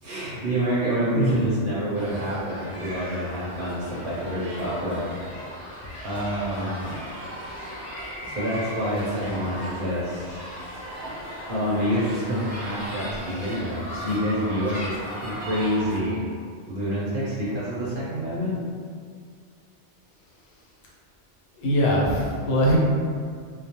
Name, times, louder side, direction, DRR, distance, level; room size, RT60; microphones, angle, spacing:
voice 1, 0.0-5.0 5.5-5.7 6.0-6.9 8.0-10.4 11.4-16.2 16.7-18.6, equal, 55° right, -8 dB, 0.7 m, -27 dB
voice 2, 1.1-1.5 21.6-22.8, equal, 85° left, -5 dB, 1.0 m, -21 dB
sound 1, 1.9-16.0, equal, ahead, 0.4 m, -37 dB
2.3 x 2.0 x 2.7 m, 2.1 s
omnidirectional pair, 1.2 m